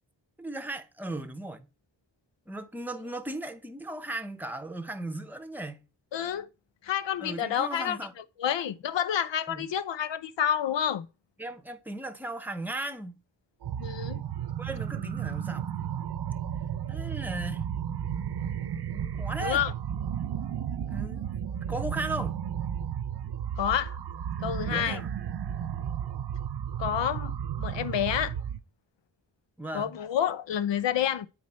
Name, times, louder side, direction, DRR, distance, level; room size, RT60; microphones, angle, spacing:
voice 1, 0.4-1.7 2.5-5.9 7.2-8.1 9.5-9.7 11.4-13.2 14.6-15.7 16.9-17.7 18.7-19.6 20.9-21.3 21.7-22.4 24.7-25.1 29.6-30.0, right 2 dB, 5° right, 0.8 m, -37 dB
voice 2, 6.1-6.5 6.8-8.0 8.4-11.1 13.8-14.2 19.4-19.7 23.6-24.0 24.4-25.0 26.8-28.3 29.7-31.3, left 9 dB, 70° left, 0.7 m, -29 dB
sound 1, 13.6-28.6, right 9 dB, 60° right, 0.7 m, -33 dB
7.7 x 4.4 x 4.3 m
cardioid pair, 70°, 45 cm